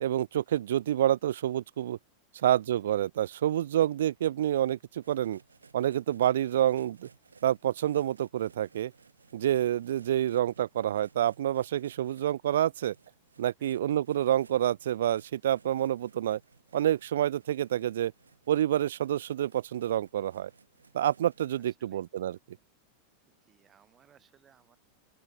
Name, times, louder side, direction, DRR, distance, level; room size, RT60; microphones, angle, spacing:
voice 1, 0.0-2.0 2.4-5.4 5.7-7.1 7.4-8.9 9.3-12.9 13.4-16.4 16.7-18.1 18.5-20.5 20.9-22.4, right 11 dB, 60° right, 0.3 m, -28 dB
sound 1, 5.0-21.7, right 4 dB, 75° right, 7.9 m, -61 dB
voice 2, 21.6-22.0 23.2-24.8, right 8 dB, 25° right, 6.3 m, -64 dB
open air
figure-of-eight pair, 90°, 0 cm